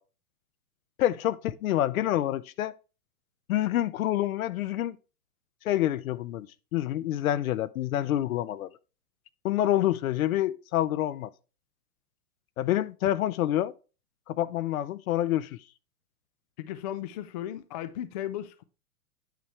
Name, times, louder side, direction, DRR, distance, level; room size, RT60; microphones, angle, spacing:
voice 1, 1.0-2.7 3.5-5.0 5.6-6.5 6.7-8.7 9.4-11.3 12.6-13.7 14.3-15.6, left 13 dB, 65° left, 0.7 m, -27 dB
voice 2, 16.6-18.6, left 12 dB, 30° left, 0.4 m, -36 dB
9.3 x 6.2 x 3.3 m
hypercardioid pair, 135°, 45 cm